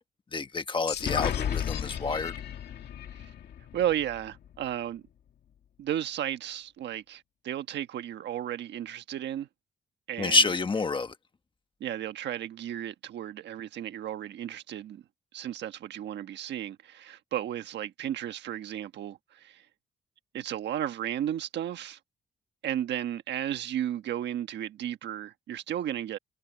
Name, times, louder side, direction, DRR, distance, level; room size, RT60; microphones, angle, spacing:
voice 1, 0.3-2.3 10.2-11.1, left 3 dB, 30° left, 1.4 m, -28 dB
sound 1, 0.9-4.5, left 9 dB, 70° left, 2.2 m, -34 dB
voice 2, 3.7-5.0 5.8-9.5 10.1-10.5 11.8-15.0 15.3-19.7 20.3-22.0 22.6-26.2, right 11 dB, 85° right, 1.4 m, -34 dB
cardioid pair, 120°, 18 cm